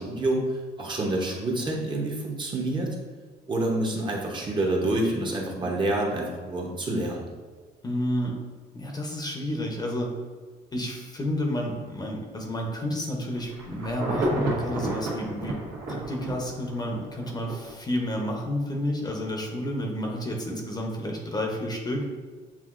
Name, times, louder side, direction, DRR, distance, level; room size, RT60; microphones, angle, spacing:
voice 1, 0.0-2.9 3.5-7.3, right 1 dB, 30° right, -1 dB, 0.9 m, -27 dB
voice 2, 7.8-8.3 8.7-10.1 10.7-15.6 15.9-22.0, equal, 25° left, 1 dB, 0.7 m, -30 dB
Insect / Thunder / Rain, 13.3-17.7 18.2-18.3, right 1 dB, 85° right, 1.4 m, -31 dB
7.2 x 2.6 x 2.5 m, 1.5 s
cardioid pair, 110°, 17 cm